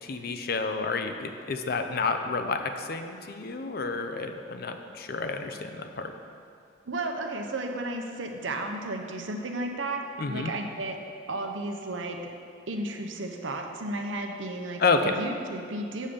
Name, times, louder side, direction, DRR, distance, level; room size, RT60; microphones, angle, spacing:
voice 1, 0.0-6.1 10.2-10.5 14.8-15.2, left 4 dB, 50° left, 7 dB, 0.5 m, -30 dB
voice 2, 6.9-11.0 11.3-12.3 12.7-16.1, right 2 dB, 80° right, 3 dB, 0.8 m, -33 dB
7.5 x 6.8 x 5.1 m, 2.5 s
head